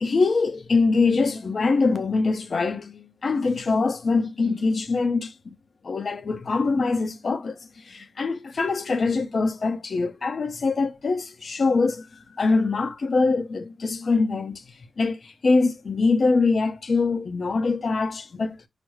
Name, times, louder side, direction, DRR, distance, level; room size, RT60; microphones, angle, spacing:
voice 1, 0.0-5.5 5.8-7.6 7.9-14.6 15.0-18.6, left 4 dB, 60° left, 0.7 m, -23 dB
4.9 x 2.0 x 4.7 m
wide cardioid pair, 85°, 0 cm